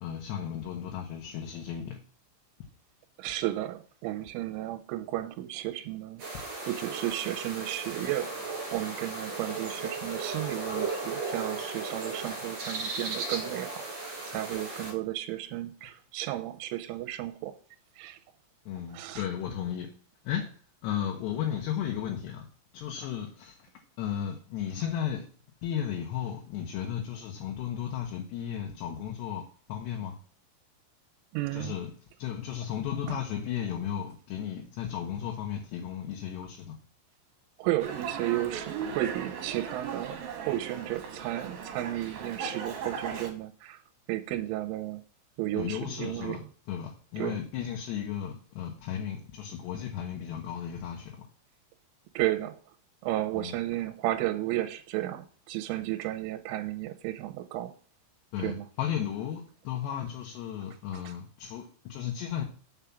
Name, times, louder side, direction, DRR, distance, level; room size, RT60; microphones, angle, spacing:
voice 1, 0.0-2.0 18.7-19.9 20.2-20.5 20.8-22.5 22.7-23.6 24.0-25.3 25.6-29.4 29.7-30.1 31.5-31.9 32.2-36.8 45.5-46.4 46.7-51.2 53.3-53.6 58.3-62.4, left 9 dB, 70° left, 3.0 m, -34 dB
voice 2, 3.2-8.4 8.7-17.5 18.0-18.2 18.9-19.2 31.3-31.7 33.1-33.2 37.6-43.8 44.1-45.0 45.4-46.4 47.2-47.4 52.2-52.6 53.0-57.7 58.4-58.7 60.9-61.1, right 15 dB, 85° right, 3.2 m, -33 dB
sound 1, 6.2-14.9, right 3 dB, 40° right, 3.4 m, -36 dB
Dog, 37.8-43.3, right 6 dB, 60° right, 2.9 m, -38 dB
7.3 x 5.0 x 7.2 m
omnidirectional pair, 5.6 m